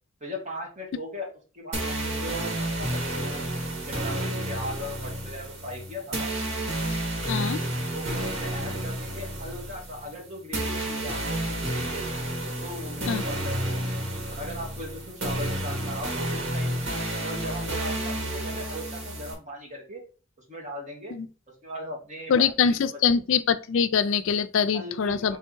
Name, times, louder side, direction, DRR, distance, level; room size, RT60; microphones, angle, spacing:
voice 1, 0.2-1.3 1.5-3.5 3.8-6.4 7.8-12.0 12.4-14.0 14.3-16.9 17.2-20.0 20.5-21.1 21.6-23.0 24.7-25.1, equal, 35° right, 1.8 m, -38 dB
sound 1, 1.7-19.3, right 1 dB, 80° right, 1.9 m, -31 dB
voice 2, 7.3-7.6 13.1-13.2 21.1-21.3 22.3-25.4, left 6 dB, 70° left, 0.4 m, -23 dB
3.5 x 3.4 x 4.5 m
head